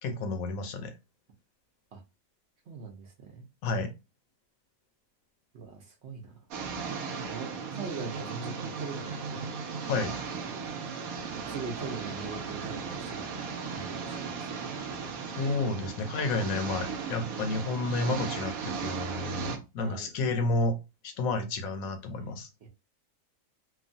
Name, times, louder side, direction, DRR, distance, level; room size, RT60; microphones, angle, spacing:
voice 1, 0.0-0.9 3.6-3.9 9.9-10.2 15.4-20.8 21.0-22.5, left 2 dB, 80° left, 7 dB, 1.1 m, -31 dB
voice 2, 2.7-3.5 5.5-6.4 7.3-9.5 11.5-13.3 13.7-14.3 19.8-20.1 22.6-22.7, right 5 dB, 60° right, 2 dB, 0.8 m, -41 dB
sound 1, 6.5-19.6, right 5 dB, 90° right, 1.1 m, -36 dB
3.0 x 2.2 x 2.5 m, 0.26 s
omnidirectional pair, 1.5 m